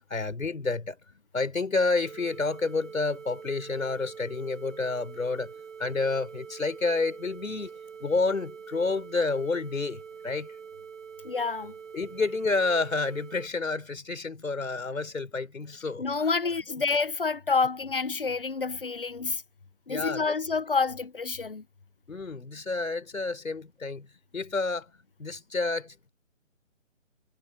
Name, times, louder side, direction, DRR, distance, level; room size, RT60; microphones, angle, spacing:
voice 1, 0.1-1.0 1.3-5.5 5.8-7.7 8.0-10.5 11.9-16.0 19.9-20.3 22.1-24.1 24.3-24.9 25.2-26.1, left 3 dB, 90° left, 5.4 m, -29 dB
sound 1, 2.0-13.5, right 6 dB, 75° right, 7.4 m, -45 dB
voice 2, 11.2-11.7 16.0-19.4 19.9-21.6, left 4 dB, 45° left, 1.0 m, -28 dB
hypercardioid pair, 175°, 39 cm